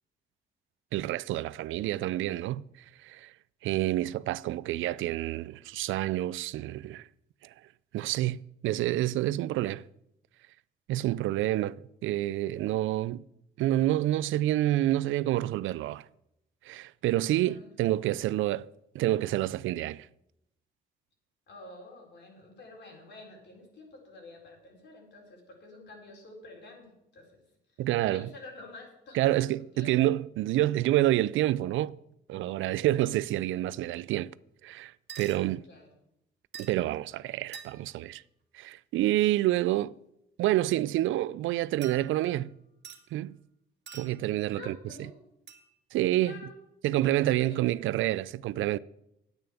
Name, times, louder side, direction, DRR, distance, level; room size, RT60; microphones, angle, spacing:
voice 1, 0.9-2.6 3.0-3.3 3.6-7.1 7.4-7.5 7.9-9.8 10.9-11.8 12.0-13.2 13.6-16.0 16.6-18.7 18.9-20.1 27.8-28.3 29.1-32.0 32.3-34.3 34.6-35.6 36.6-38.2 38.5-39.9 40.4-42.5 43.1-43.4 43.9-44.8 45.9-46.4 46.8-48.8, right 15 dB, 80° right, 0.4 m, -28 dB
voice 2, 17.4-17.7 21.5-26.9 27.1-27.4 28.1-29.3 29.7-29.9 35.7-35.9 44.5-45.1 46.2-46.5 47.1-47.8, left 2 dB, 60° left, 4.3 m, -49 dB
sound 1, 35.1-35.4 36.5-36.9 37.5-38.0 41.8-42.4 42.8-43.0 43.9-44.3 45.5-45.7, right 7 dB, 60° right, 1.9 m, -46 dB
9.3 x 9.0 x 6.9 m
cardioid pair, 90°, 20 cm